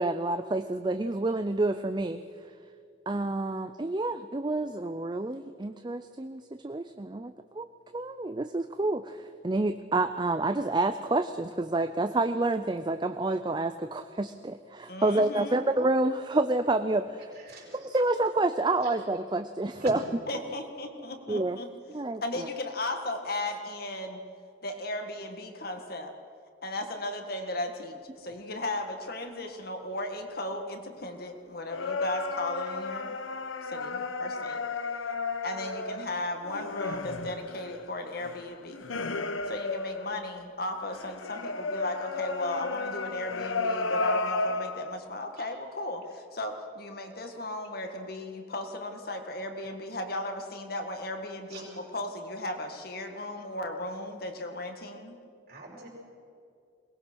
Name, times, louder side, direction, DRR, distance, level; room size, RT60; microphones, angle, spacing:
voice 1, 0.0-2.2 3.1-7.7 7.9-17.3 17.7-20.0 21.3-21.6 21.9-22.5, right 2 dB, 25° right, 10 dB, 0.4 m, -28 dB
voice 2, 14.9-15.6 20.3-21.7 22.2-24.2 24.6-26.1 26.6-33.2 33.6-34.6 35.4-38.8 39.5-55.2, left 1 dB, 50° left, 5 dB, 1.8 m, -36 dB
voice 3, 17.3-17.9 18.8-18.9 19.7-19.9 51.5-51.6 55.5-55.9, right 2 dB, 55° right, -2 dB, 5.4 m, -43 dB
sound 1, 31.7-40.5 40.9-44.9, left 3 dB, 90° left, 1.1 m, -33 dB
22.0 x 19.0 x 6.2 m, 2.3 s
head